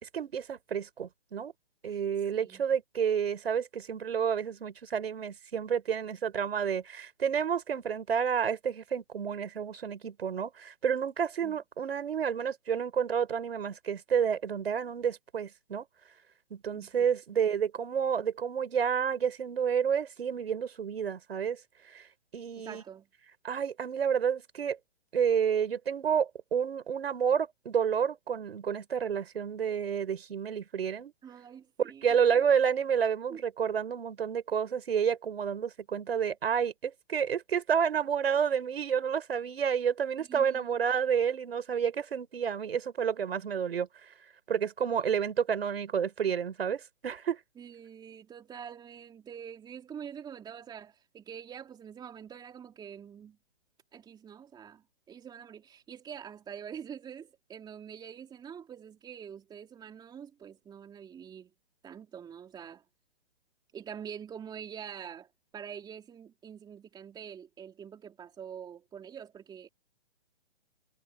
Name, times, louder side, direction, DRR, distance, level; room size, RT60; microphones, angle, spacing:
voice 1, 0.0-1.5 1.8-15.9 16.5-22.1 22.3-22.8 23.4-24.8 25.1-31.1 31.8-44.1 44.5-47.4, right 7 dB, 65° right, 4.9 m, -30 dB
voice 2, 2.3-2.6 11.4-11.6 16.7-17.1 22.6-23.1 31.2-32.4 33.3-33.4 40.2-40.7 47.6-53.4 53.9-61.5 61.8-62.8 63.7-69.7, right 8 dB, 15° right, 3.3 m, -45 dB
hypercardioid pair, 135°, 32 cm